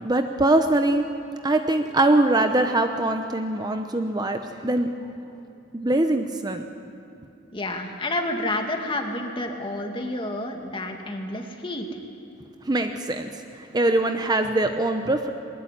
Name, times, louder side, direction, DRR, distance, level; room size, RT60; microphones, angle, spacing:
voice 1, 0.0-1.1 1.4-4.9 5.7-6.7 12.7-13.3 13.7-15.3, right 2 dB, 20° right, 6 dB, 0.8 m, -22 dB
voice 2, 7.5-11.9, left 1 dB, 25° left, 3 dB, 2.2 m, -29 dB
21.0 x 19.5 x 9.9 m, 2.6 s
head